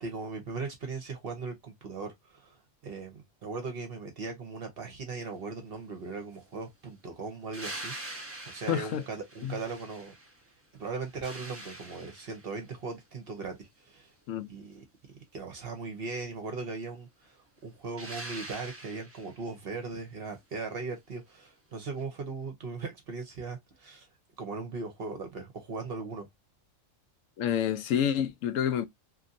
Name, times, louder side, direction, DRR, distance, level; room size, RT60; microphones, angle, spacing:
voice 1, 0.0-2.6 2.8-10.1 10.8-14.1 14.5-14.8 15.3-17.3 17.6-24.1 24.4-26.3, right 4 dB, 50° right, 0.8 m, -38 dB
sound 1, 7.5-10.4 10.8-12.6 18.0-19.4 22.0-22.1, right 1 dB, 15° right, 0.6 m, -44 dB
voice 2, 8.7-9.0 9.4-9.6 14.3-14.5 27.4-28.9, left 9 dB, 75° left, 0.9 m, -28 dB
2.9 x 2.7 x 2.5 m
omnidirectional pair, 1.4 m